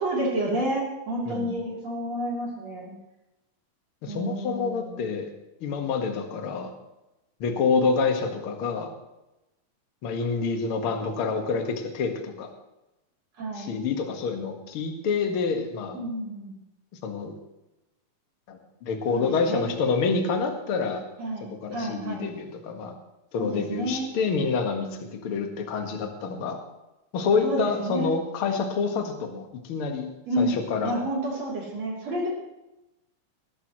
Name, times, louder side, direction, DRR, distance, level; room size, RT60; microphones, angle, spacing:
voice 1, 0.0-2.9 4.1-5.1 13.3-13.8 15.9-16.6 19.1-19.7 21.2-22.3 23.3-24.1 27.4-28.1 30.3-30.6 30.8-32.3, right 1 dB, 50° right, -4 dB, 4.1 m, -30 dB
voice 2, 4.0-5.3 5.6-6.7 7.4-8.9 10.0-12.5 13.6-16.0 17.0-17.3 18.5-21.0 21.5-22.9 23.3-26.6 27.1-30.9, left 5 dB, 50° left, 4 dB, 1.9 m, -27 dB
19.5 x 12.5 x 3.1 m, 0.95 s
omnidirectional pair, 4.0 m